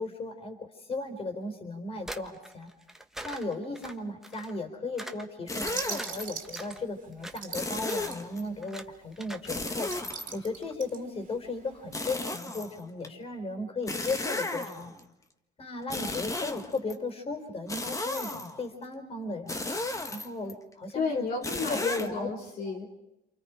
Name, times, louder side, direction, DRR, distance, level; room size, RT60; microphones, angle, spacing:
voice 1, 0.0-2.7 3.2-9.9 10.3-14.9 15.6-19.6 20.1-21.2 21.7-22.3, left 3 dB, 35° left, 6 dB, 4.2 m, -35 dB
sound 1, 2.0-4.6 5.0-5.2 5.6-6.8 7.1-7.5 7.8-8.1 8.6-8.9 9.1-9.5 9.7-10.0, right 1 dB, ahead, 1.4 m, -43 dB
sound 2, 5.5-6.2 7.5-8.4 9.5-10.7 11.9-13.1 13.9-15.0 15.8-16.9 17.7-18.7 19.5-20.5 21.4-22.1, left 2 dB, 20° left, 1.7 m, -34 dB
sound 3, 5.5-8.6 8.9-9.0 9.4-12.0, right 7 dB, 50° right, 2.5 m, -41 dB
voice 2, 20.9-22.9, left 4 dB, 65° left, -1 dB, 3.6 m, -33 dB
28.0 x 28.0 x 5.1 m, 0.89 s
cardioid pair, 110°, 17 cm